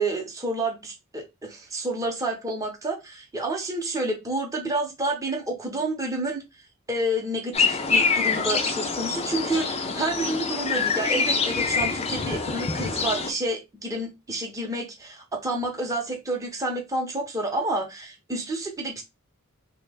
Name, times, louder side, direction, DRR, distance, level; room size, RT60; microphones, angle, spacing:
voice 1, 0.0-6.4 6.9-19.0, right 1 dB, 15° right, 0.6 m, -29 dB
sound 1, 7.5-13.3, left 4 dB, 30° left, 0.4 m, -25 dB
3.1 x 2.1 x 3.3 m
head